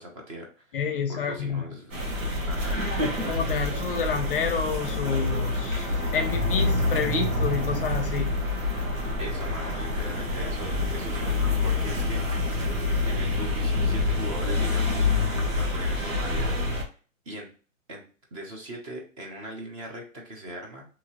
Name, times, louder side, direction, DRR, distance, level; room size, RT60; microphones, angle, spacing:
voice 1, 0.0-0.8 1.1-1.9 2.4-2.8 9.2-12.7 13.0-15.1 15.5-17.0 17.3-17.5 17.9-18.0 18.3-20.9, right 1 dB, 25° right, 1 dB, 0.6 m, -40 dB
voice 2, 0.7-1.8 3.3-8.4, left 6 dB, 45° left, 6 dB, 0.5 m, -29 dB
sound 1, 1.9-16.8, left 2 dB, 75° right, 1.2 m, -27 dB
2.8 x 2.6 x 2.8 m, 0.38 s
hypercardioid pair, 145°, 40 cm